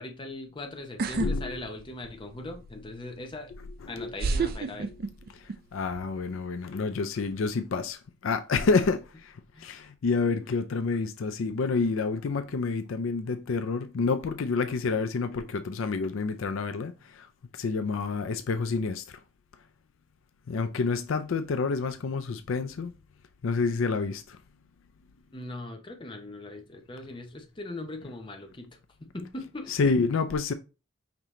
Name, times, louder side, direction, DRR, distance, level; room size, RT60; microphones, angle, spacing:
voice 1, 0.0-3.5 3.9-4.9 9.5-9.7 10.3-10.4 25.3-28.7 29.0-29.8, left 2 dB, 25° left, 0.7 m, -40 dB
sound 1, 1.0-1.3 1.7-2.3 3.3-3.4 4.2-5.5 5.8-6.3, right 4 dB, 45° right, 0.4 m, -29 dB
voice 2, 1.1-1.6 3.8-4.1 5.4-5.5 5.7-9.3 9.6-17.3 17.6-19.0 20.5-22.9 23.4-24.4 29.7-30.5, left 4 dB, 70° left, 0.4 m, -28 dB
5.2 x 2.8 x 3.1 m
head